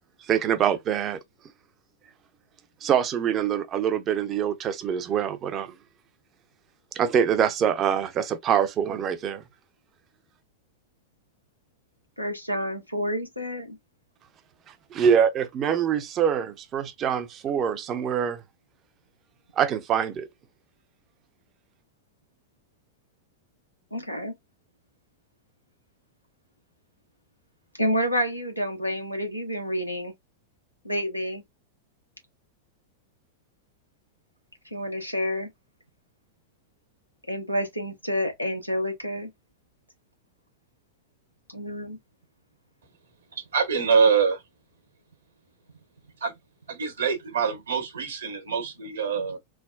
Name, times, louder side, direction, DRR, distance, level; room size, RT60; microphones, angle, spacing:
voice 1, 0.3-1.2 2.8-5.7 6.9-9.4 14.9-18.4 19.6-20.3, right 8 dB, 30° right, 0.6 m, -24 dB
voice 2, 12.2-13.8 23.9-24.3 27.8-30.1 30.8-31.4 34.7-35.5 37.3-39.3 41.5-42.0, equal, 90° left, 0.9 m, -29 dB
voice 3, 43.3-44.4 46.2-46.4 46.7-49.4, right 5 dB, 65° right, 1.1 m, -24 dB
3.4 x 2.2 x 2.3 m
figure-of-eight pair, 90°, 0 cm